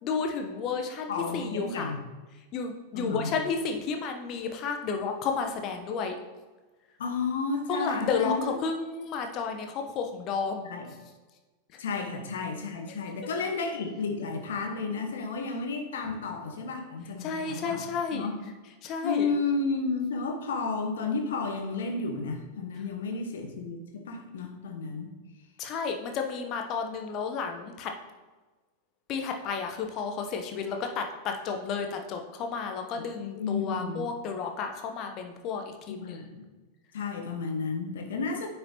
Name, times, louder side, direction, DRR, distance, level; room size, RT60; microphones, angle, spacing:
voice 1, 0.0-1.9 2.5-6.2 7.7-10.7 17.2-18.3 18.8-19.3 25.6-27.9 29.1-36.2, left 5 dB, 35° left, 4 dB, 1.0 m, -32 dB
voice 2, 1.1-2.0 2.9-3.3 7.0-8.5 10.6-10.9 11.8-17.8 18.1-18.4 19.0-25.1 32.9-34.1 35.9-36.4 36.9-38.5, left 4 dB, 60° left, 4 dB, 1.0 m, -32 dB
9.5 x 5.3 x 3.0 m, 1.2 s
figure-of-eight pair, 90°, 0 cm